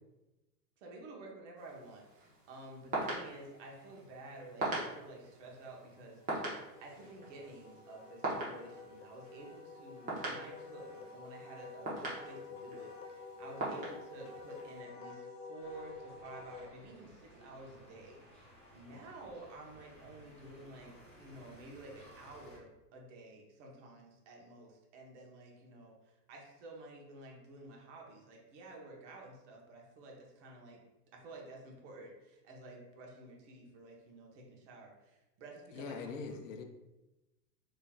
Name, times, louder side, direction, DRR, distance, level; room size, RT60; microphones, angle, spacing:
voice 1, 0.8-6.5 6.8-30.8 31.1-36.4, right 2 dB, 50° right, -1 dB, 1.1 m, -51 dB
sound 1, 1.6-14.8, right 2 dB, 15° right, 1.0 m, -43 dB
Wind instrument woodwind instrument, 5.7-16.7, left 4 dB, 85° left, 1.0 m, -50 dB
sound 2, 15.6-22.6, equal, 15° left, 0.8 m, -58 dB
voice 2, 35.7-36.6, left 5 dB, 55° left, 5 dB, 0.6 m, -42 dB
4.1 x 3.1 x 2.3 m, 1.0 s
hypercardioid pair, 120°, 47 cm